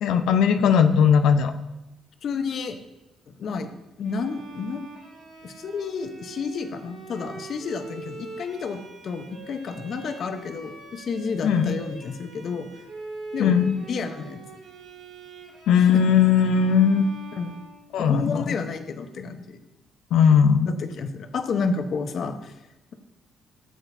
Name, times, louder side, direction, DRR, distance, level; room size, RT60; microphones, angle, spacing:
voice 1, 0.0-1.5 11.4-11.7 13.4-13.8 15.7-17.0 17.9-18.4 20.1-20.7, left 7 dB, 85° left, 7 dB, 0.7 m, -18 dB
voice 2, 2.2-2.8 3.3-3.7 4.0-4.8 5.4-12.7 13.3-13.6 13.9-14.4 15.7-16.0 17.3-17.6 18.0-19.6 20.7-22.5, left 5 dB, 60° left, 7 dB, 0.9 m, -31 dB
Bowed string instrument, 4.0-18.3, right 3 dB, 80° right, 3.5 m, -42 dB
14.5 x 7.8 x 2.7 m, 0.95 s
cardioid pair, 90°, 0 cm